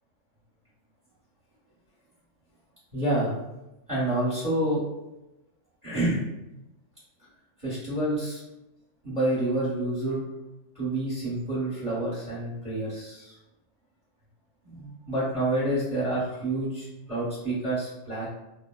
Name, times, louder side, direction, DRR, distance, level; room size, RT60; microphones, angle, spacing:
voice 1, 2.9-3.4 3.9-4.8 5.8-6.2 7.6-8.4 9.0-10.2 10.7-13.3 14.7-18.3, right 1 dB, 30° right, -7 dB, 1.0 m, -28 dB
3.5 x 2.1 x 2.2 m, 0.98 s
omnidirectional pair, 1.3 m